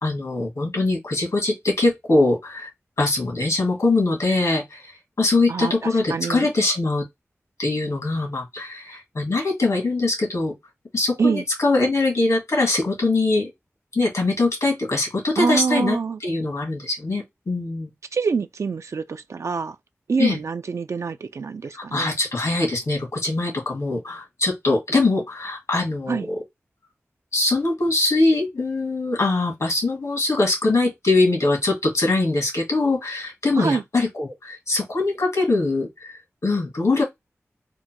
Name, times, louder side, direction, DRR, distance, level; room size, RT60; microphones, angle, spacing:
voice 1, 0.0-2.7 3.0-7.0 7.6-10.5 10.9-13.5 13.9-17.9 20.2-20.4 21.7-26.4 27.3-37.0, left 2 dB, 80° left, 1.7 m, -22 dB
voice 2, 5.5-6.5 11.2-11.4 15.4-16.2 18.1-19.8 20.1-22.2 26.1-26.3 33.6-33.8, right 5 dB, 70° right, 0.3 m, -25 dB
3.6 x 2.2 x 4.3 m
wide cardioid pair, 60°, 5 cm